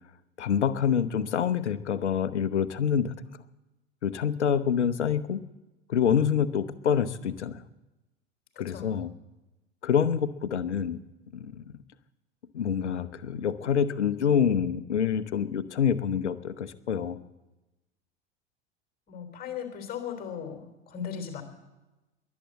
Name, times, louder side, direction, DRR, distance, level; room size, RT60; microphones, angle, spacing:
voice 1, 0.4-3.1 4.0-5.4 5.9-7.6 8.6-9.1 9.8-11.0 11.3-11.6 12.5-17.2, left 8 dB, 70° left, 14 dB, 1.0 m, -26 dB
voice 2, 8.6-8.9 19.1-21.4, left 8 dB, 25° left, 6 dB, 3.6 m, -37 dB
22.0 x 8.5 x 7.6 m, 1.1 s
figure-of-eight pair, 80°, 35 cm